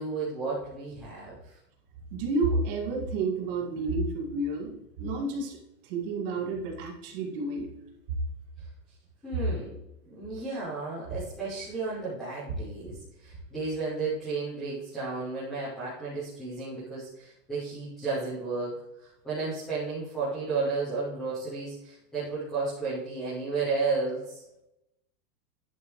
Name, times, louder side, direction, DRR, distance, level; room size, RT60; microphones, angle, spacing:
voice 1, 0.0-1.6 9.2-9.7 10.0-24.4, right 3 dB, ahead, -14 dB, 0.5 m, -33 dB
voice 2, 2.1-5.6 5.8-7.7, right 2 dB, 35° right, 0 dB, 2.0 m, -30 dB
10.5 x 9.2 x 3.1 m, 0.88 s
supercardioid pair, 180°, 49 cm